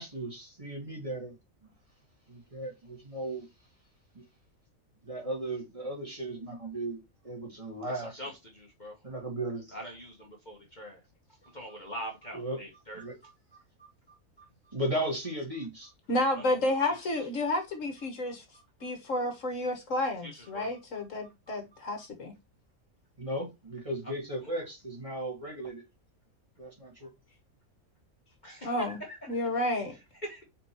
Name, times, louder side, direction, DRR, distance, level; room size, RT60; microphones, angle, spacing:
voice 1, 0.0-1.7 2.3-3.5 4.1-4.2 5.0-7.0 7.2-8.2 9.0-9.7 12.3-12.6 12.9-13.2 14.7-15.9 23.2-25.8 26.6-27.1, right 1 dB, 25° right, 2.0 m, -36 dB
voice 2, 7.9-9.0 9.7-11.0 11.4-13.3 13.8-13.9 14.4-14.5 16.3-16.6 17.2-17.3 18.2-18.9 20.2-20.7 21.5-21.6 24.4-24.5 28.4-29.2 30.2-30.4, right 1 dB, 35° left, 1.3 m, -44 dB
voice 3, 16.1-18.4 18.8-22.3 28.6-29.0 29.3-29.9, left 1 dB, 60° left, 1.7 m, -30 dB
5.1 x 4.3 x 4.4 m
omnidirectional pair, 1.5 m